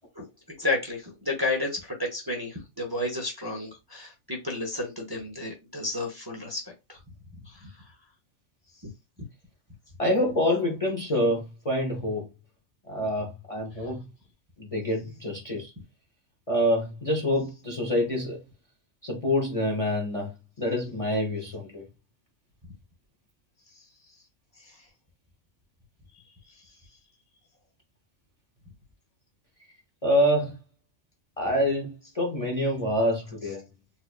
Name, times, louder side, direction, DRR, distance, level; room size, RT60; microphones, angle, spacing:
voice 1, 0.6-7.0 7.5-7.7 24.6-24.7, left 2 dB, 20° right, 0.7 m, -32 dB
voice 2, 10.0-12.2 12.9-14.1 14.6-15.7 16.5-18.4 19.0-20.3 20.6-21.8 30.0-30.6 31.4-33.6, left 1 dB, 30° left, 0.7 m, -26 dB
4.2 x 2.4 x 2.4 m
omnidirectional pair, 1.4 m